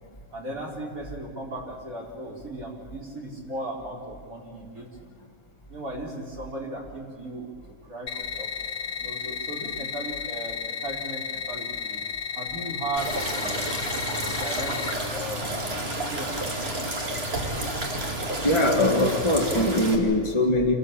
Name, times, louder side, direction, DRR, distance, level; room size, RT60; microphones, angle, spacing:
voice 1, 0.3-5.2 5.7-7.5 7.9-8.5 9.0-12.0 12.3-13.6 14.2-17.0 17.3-17.4 17.8-17.9, right 1 dB, 70° right, -1 dB, 4.7 m, -37 dB
sound 1, 8.1-14.9, left 6 dB, 85° left, 1.8 m, -33 dB
sound 2, 13.0-20.0, right 1 dB, 45° right, 2.8 m, -30 dB
voice 2, 18.4-20.7, left 1 dB, 20° left, 1 dB, 1.8 m, -22 dB
28.5 x 14.0 x 8.7 m, 2.4 s
omnidirectional pair, 1.5 m